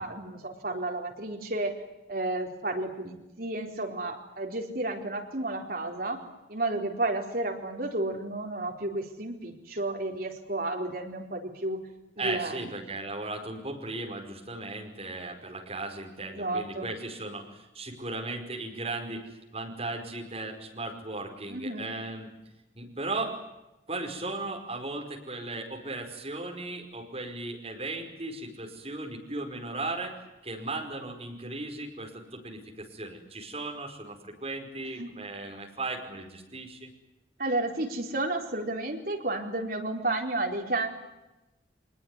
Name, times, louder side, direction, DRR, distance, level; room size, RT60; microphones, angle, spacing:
voice 1, 0.0-1.8 2.1-6.2 6.5-11.8 12.2-12.7 16.3-16.9 21.5-21.9 35.0-35.1 37.4-40.9, right 2 dB, 50° right, 2 dB, 4.3 m, -32 dB
voice 2, 12.2-22.3 22.7-23.4 23.9-36.9, right 2 dB, 30° right, 2 dB, 5.2 m, -36 dB
25.0 x 20.5 x 9.9 m, 0.97 s
head